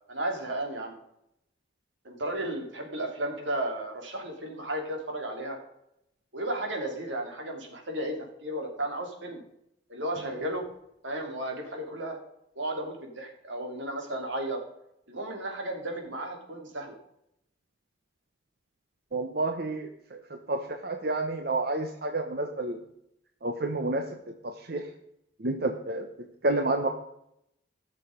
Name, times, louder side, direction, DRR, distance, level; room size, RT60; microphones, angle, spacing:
voice 1, 0.1-0.9 2.0-5.6 6.3-8.2 8.4-9.4 9.9-10.6 11.0-12.2 12.6-14.6 15.1-17.0, right 1 dB, 90° right, 2 dB, 2.9 m, -34 dB
voice 2, 19.1-19.9 20.5-22.8 23.4-24.0 24.4-24.8 25.4-26.1 26.4-26.9, right 2 dB, 55° right, 5 dB, 0.9 m, -29 dB
16.0 x 6.6 x 5.1 m, 0.78 s
head